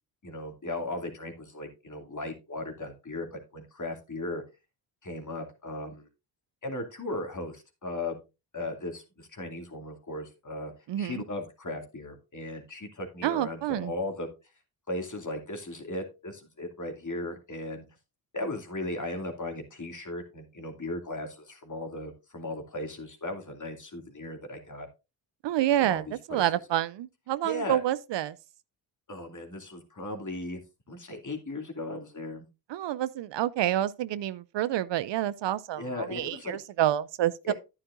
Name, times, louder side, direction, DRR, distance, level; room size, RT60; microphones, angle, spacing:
voice 1, 0.2-4.4 5.0-6.1 6.6-8.2 8.5-10.7 11.0-14.3 14.9-17.8 18.3-24.9 25.8-26.4 27.4-27.8 29.1-30.6 30.9-32.4 35.8-36.6 37.4-37.5, left 2 dB, 40° left, 2.5 m, -37 dB
voice 2, 10.9-11.2 13.2-13.9 25.4-28.4 32.7-37.5, right 12 dB, 65° right, 0.5 m, -28 dB
9.9 x 9.9 x 2.5 m
supercardioid pair, 55°, 48 cm